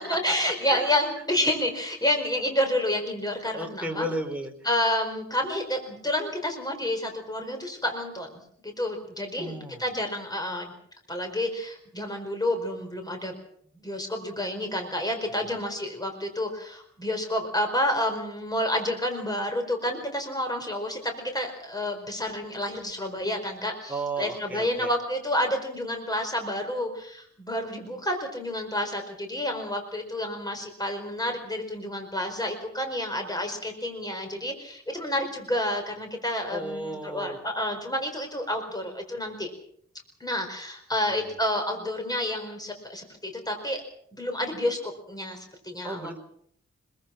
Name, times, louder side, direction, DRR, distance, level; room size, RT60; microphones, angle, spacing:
voice 1, 0.0-4.1 4.6-10.7 11.1-13.3 13.8-39.5 40.2-43.8 44.2-44.8 45.1-46.1, left 1 dB, 15° left, 4 dB, 4.7 m, -29 dB
voice 2, 3.5-4.5 9.4-9.9 15.4-15.6 23.9-24.9 36.5-37.4 41.1-41.3 45.8-46.2, right 1 dB, 5° right, 3 dB, 4.3 m, -34 dB
25.5 x 23.0 x 6.0 m, 0.66 s
wide cardioid pair, 105°, 29 cm